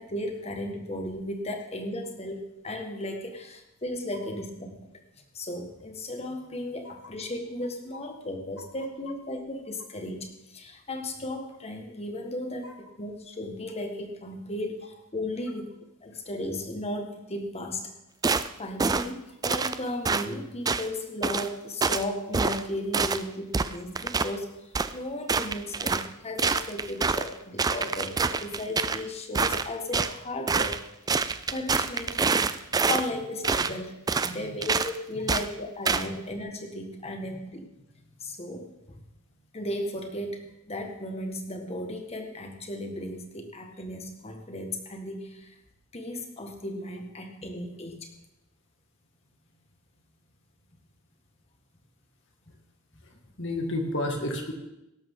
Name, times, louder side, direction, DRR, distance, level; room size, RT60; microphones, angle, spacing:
voice 1, 0.0-4.7 5.3-15.7 16.0-17.9 18.6-24.5 24.9-30.8 31.5-32.2 32.9-37.6 38.2-38.7 39.5-45.5 45.9-48.1, left 1 dB, 30° left, 4 dB, 1.6 m, -35 dB
sound 1, 18.2-18.5 18.8-19.1 19.4-19.8 20.1-20.2 20.7-20.9 21.2-21.5 21.8-22.0 22.3-22.6 22.9-23.2 23.5-24.3 24.7-24.9 25.3-26.1 26.4-27.3 27.6-29.0 29.3-30.1 30.5-30.8 31.1-33.1 33.4-33.7 34.1-34.3 34.6-34.9 35.3-35.5 35.9-36.1, right 4 dB, 15° right, 0.3 m, -26 dB
voice 2, 34.2-34.6 35.1-35.2 37.3-37.4 53.0-53.1 53.4-54.5, left 1 dB, 60° left, 3 dB, 2.2 m, -32 dB
17.0 x 12.5 x 3.8 m, 0.90 s
head